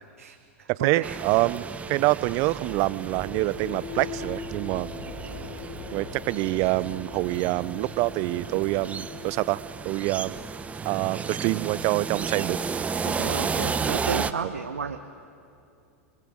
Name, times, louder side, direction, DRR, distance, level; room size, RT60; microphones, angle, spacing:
voice 1, 0.2-1.2 13.0-15.0, right 6 dB, 85° right, 5 dB, 1.2 m, -33 dB
voice 2, 0.8-4.9 5.9-10.4 10.8-12.6, right 20 dB, 45° right, 19 dB, 0.7 m, -26 dB
sound 1, 0.9-11.5, left 4 dB, 65° left, 5.4 m, -42 dB
sound 2, 1.0-14.3, right 5 dB, 20° right, 1.0 m, -33 dB
30.0 x 22.0 x 7.8 m, 2.6 s
hypercardioid pair, 95°, 8 cm